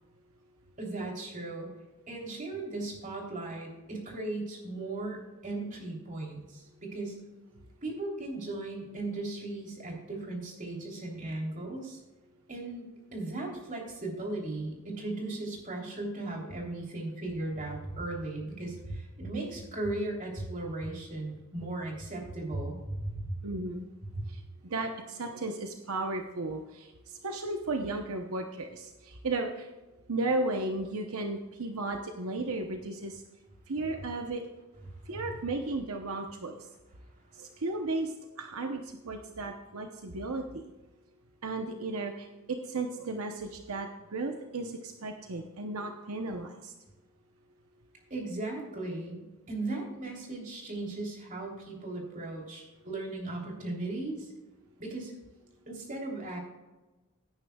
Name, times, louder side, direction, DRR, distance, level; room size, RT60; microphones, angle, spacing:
voice 1, 0.8-1.7 2.1-7.2 7.8-12.0 12.5-23.3 24.1-24.2 35.1-35.2 48.1-54.3 54.8-55.1 55.7-56.4, right 2 dB, 35° right, -1 dB, 3.3 m, -37 dB
voice 2, 23.4-23.9 24.3-29.7 30.1-33.2 33.7-34.4 35.1-36.6 37.3-40.6 41.4-46.7, right 2 dB, 75° right, 4 dB, 0.9 m, -35 dB
17.0 x 9.8 x 2.3 m, 1.1 s
head